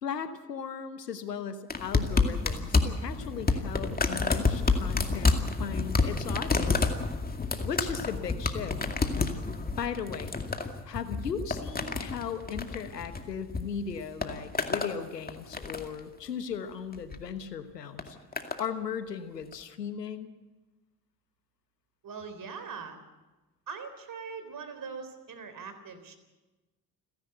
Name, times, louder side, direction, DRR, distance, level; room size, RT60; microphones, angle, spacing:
voice 1, 0.0-6.9 7.6-8.8 9.8-10.4 10.8-18.2 18.6-20.3, left 7 dB, 90° left, 11 dB, 1.3 m, -37 dB
sound 1, 1.7-13.6 13.9-14.9 15.3-16.0 16.9-17.2 18.0-18.6 19.5-19.6, left 3 dB, 20° left, 2.3 m, -29 dB
voice 2, 22.0-23.0 23.7-26.2, right 5 dB, 45° right, 10 dB, 3.9 m, -41 dB
29.5 x 11.5 x 7.9 m, 1.2 s
figure-of-eight pair, 55°, 47 cm